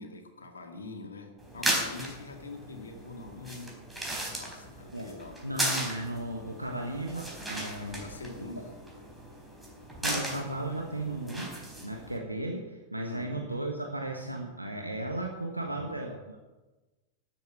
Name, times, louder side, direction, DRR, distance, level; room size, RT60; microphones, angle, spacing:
voice 1, 0.0-3.8 4.4-5.4 7.9-8.8 13.0-13.5 15.8-16.0, left 3 dB, 70° left, 4 dB, 2.2 m, -44 dB
sound 1, 1.4-12.2, right 1 dB, 5° right, 4.1 m, -36 dB
voice 2, 5.4-8.0 10.0-16.4, right 1 dB, 85° right, 1 dB, 1.3 m, -35 dB
13.0 x 7.9 x 8.1 m, 1.2 s
figure-of-eight pair, 90°, 0 cm